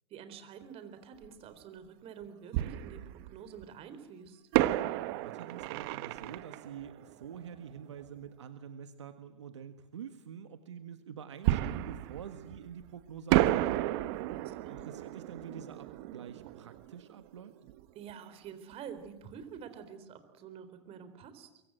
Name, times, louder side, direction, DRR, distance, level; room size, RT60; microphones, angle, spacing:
voice 1, 0.1-4.4 14.3-14.9 17.9-21.6, right 7 dB, 40° right, 10 dB, 4.2 m, -48 dB
Fireworks, 1.2-1.3 2.5-3.6 4.5-8.0 11.4-12.9 13.3-17.8 18.1-18.2 18.7-18.9, right 15 dB, 55° right, 1.1 m, -32 dB
voice 2, 5.2-14.1 14.5-17.5, right 8 dB, 80° right, 9 dB, 1.6 m, -47 dB
24.0 x 23.5 x 7.8 m, 0.98 s
hypercardioid pair, 95°, 15 cm